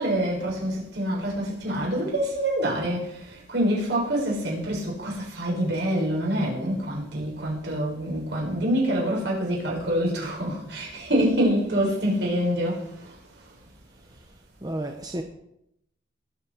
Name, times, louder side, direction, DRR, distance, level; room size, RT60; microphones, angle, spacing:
voice 1, 0.0-3.2 3.5-12.8, equal, 65° right, 7.1 m, -26 dB
voice 2, 13.9-15.2, right 1 dB, 20° right, 0.9 m, -35 dB
21.0 x 8.5 x 5.2 m
head